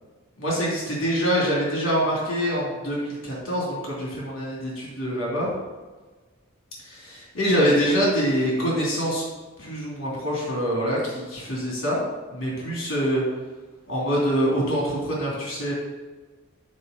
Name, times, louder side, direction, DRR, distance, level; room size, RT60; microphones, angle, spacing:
voice 1, 0.4-5.5 6.8-9.2 9.6-12.0 12.3-13.2 13.9-15.7, equal, 65° left, -5 dB, 3.1 m, -25 dB
9.8 x 4.9 x 5.3 m, 1.3 s
head